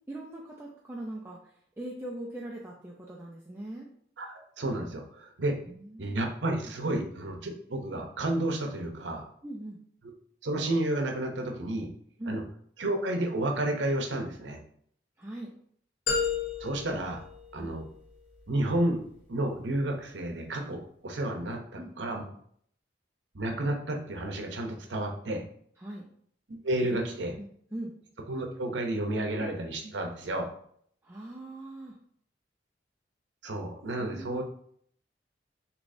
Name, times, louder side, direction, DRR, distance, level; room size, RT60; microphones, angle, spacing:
voice 1, 0.1-3.9 5.7-6.3 9.4-9.8 12.2-12.4 15.2-15.5 17.6-17.7 21.8-21.9 25.8-26.1 26.8-27.1 27.4-27.9 29.3-29.5 31.0-31.9 34.0-34.4, right 1 dB, 15° right, -3 dB, 0.5 m, -41 dB
voice 2, 4.2-5.6 6.0-9.3 10.4-11.9 12.3-12.4 12.8-14.6 16.6-17.2 17.5-17.9 18.5-19.0 19.3-22.2 23.3-25.4 26.5-27.3 28.3-30.5 33.4-34.4, right 1 dB, 90° right, 3 dB, 0.8 m, -31 dB
sound 1, 16.1-18.1, left 5 dB, 80° left, 1.6 m, -32 dB
6.4 x 3.1 x 2.7 m, 0.64 s
head